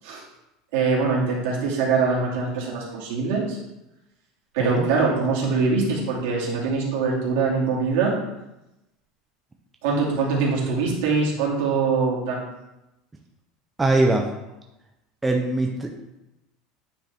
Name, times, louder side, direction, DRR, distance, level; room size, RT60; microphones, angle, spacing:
voice 1, 0.7-3.6 4.5-8.2 9.8-12.4, right 4 dB, 70° right, -4 dB, 2.4 m, -23 dB
voice 2, 13.8-14.3 15.2-15.9, right 2 dB, 10° right, 1 dB, 0.5 m, -21 dB
9.2 x 5.0 x 3.5 m, 0.93 s
cardioid pair, 170°, 0 cm